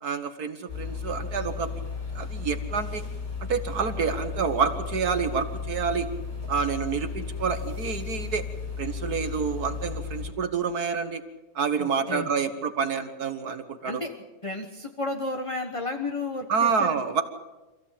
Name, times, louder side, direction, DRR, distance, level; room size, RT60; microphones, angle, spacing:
voice 1, 0.0-1.7 2.2-3.0 3.4-6.1 6.5-8.4 8.8-11.2 11.6-14.0 16.5-17.2, right 6 dB, 65° right, 8 dB, 1.8 m, -28 dB
sound 1, 0.7-10.3, left 5 dB, 70° left, 6.3 m, -34 dB
voice 2, 11.8-12.3 13.8-14.1 14.4-17.0, left 2 dB, 20° left, 4 dB, 1.3 m, -32 dB
26.5 x 15.5 x 8.5 m, 1.1 s
omnidirectional pair, 1.8 m